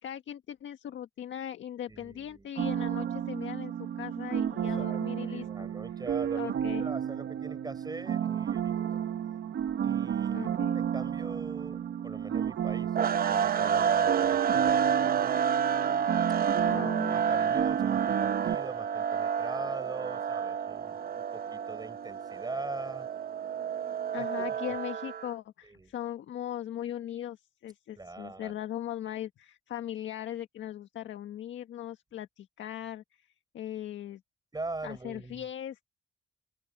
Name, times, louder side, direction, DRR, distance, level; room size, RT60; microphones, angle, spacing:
voice 1, 0.0-5.7 6.3-6.8 10.3-10.7 16.6-17.1 24.1-33.3 33.5-34.2 34.8-35.9, left 11 dB, 70° left, 1.7 m, -39 dB
voice 2, 1.9-2.5 4.5-8.8 9.8-16.0 16.7-23.1 24.1-24.8 25.6-25.9 28.0-28.6 34.5-35.4, right 3 dB, 20° right, 7.3 m, -43 dB
synth keys, 2.6-18.6, right 9 dB, 65° right, 1.8 m, -32 dB
sound 1, 13.0-25.3, right 7 dB, 50° right, 0.9 m, -29 dB
open air
cardioid pair, 90°, 20 cm